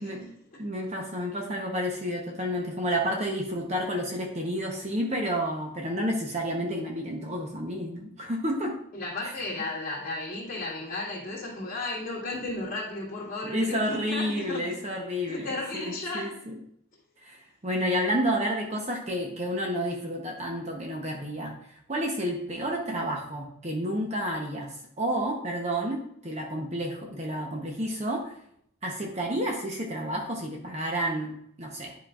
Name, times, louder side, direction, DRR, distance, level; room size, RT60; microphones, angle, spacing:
voice 1, 0.0-0.7 8.9-14.7 15.3-16.4, left 2 dB, 40° left, -9 dB, 2.0 m, -34 dB
voice 2, 0.6-8.7 13.5-16.6 17.2-28.4 28.8-32.0, equal, 30° right, 0 dB, 0.9 m, -30 dB
10.0 x 5.1 x 2.5 m, 0.70 s
head